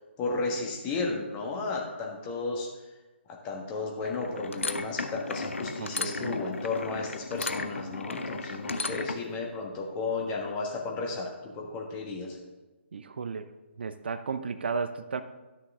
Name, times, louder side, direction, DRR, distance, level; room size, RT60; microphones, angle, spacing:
voice 1, 0.2-2.7 3.3-12.4, left 3 dB, 20° left, 0 dB, 1.5 m, -33 dB
sound 1, 4.0-9.3, left 3 dB, 75° left, 0.7 m, -35 dB
voice 2, 5.8-6.3 12.9-13.5 13.8-15.2, right 5 dB, 55° right, 10 dB, 0.5 m, -34 dB
12.5 x 6.4 x 3.7 m, 1.2 s
figure-of-eight pair, 145°, 7 cm